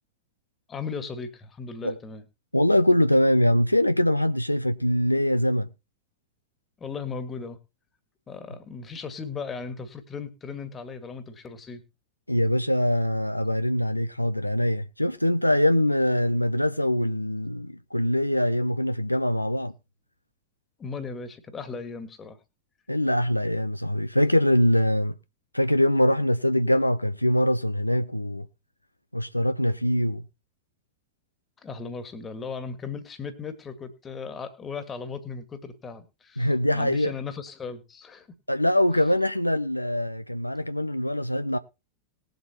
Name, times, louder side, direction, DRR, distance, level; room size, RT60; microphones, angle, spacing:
voice 1, 0.7-2.2 6.8-7.6 8.3-11.8 20.8-22.4 31.6-38.3, left 5 dB, 20° left, 1.8 m, -37 dB
voice 2, 2.5-5.7 12.3-19.7 22.9-25.1 25.5-28.5 29.1-30.2 36.4-37.1 38.5-41.6, left 1 dB, 85° left, 0.5 m, -23 dB
19.5 x 7.9 x 2.9 m
figure-of-eight pair, 90°, 0 cm